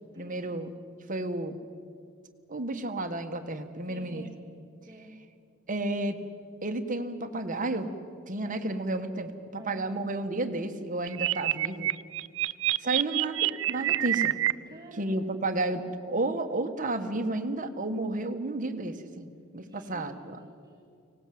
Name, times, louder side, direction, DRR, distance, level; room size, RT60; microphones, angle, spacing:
voice 1, 0.1-0.8 1.1-1.6 2.5-4.3 5.7-6.2 6.6-7.9 8.3-11.9 12.8-14.3 14.9-20.4, right 2 dB, 40° right, 7 dB, 1.4 m, -32 dB
voice 2, 3.9-4.3 4.9-5.2 8.4-8.6 9.5-10.0 14.7-15.3 19.6-21.0, right 1 dB, 20° right, -2 dB, 2.5 m, -49 dB
sound 1, 11.1-14.5, right 14 dB, 65° right, 0.5 m, -27 dB
24.5 x 18.0 x 7.8 m, 2.4 s
head